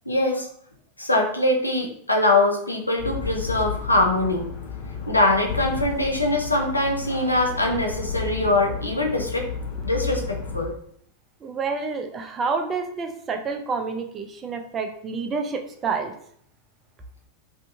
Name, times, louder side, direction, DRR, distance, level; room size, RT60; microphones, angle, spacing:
voice 1, 0.1-0.5 1.0-4.5 5.1-9.5 9.8-10.7, left 2 dB, 85° left, 1 dB, 0.4 m, -22 dB
sound 1, 3.0-10.7, left 5 dB, 50° left, 0.8 m, -32 dB
voice 2, 11.4-16.1, right 4 dB, 25° right, 4 dB, 0.3 m, -28 dB
2.5 x 2.5 x 2.3 m, 0.65 s
figure-of-eight pair, 90°, 0 cm